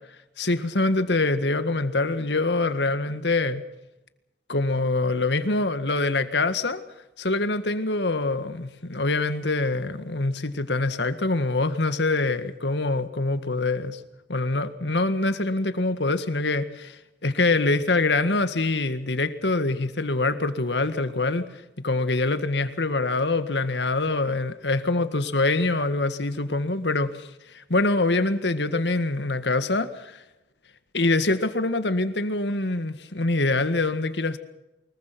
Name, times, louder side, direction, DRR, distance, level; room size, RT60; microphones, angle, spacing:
voice 1, 0.4-3.6 4.5-6.8 7.2-14.0 14.3-30.2 30.9-34.4, left 2 dB, 85° left, 10 dB, 1.8 m, -25 dB
24.5 x 22.0 x 6.1 m, 0.94 s
head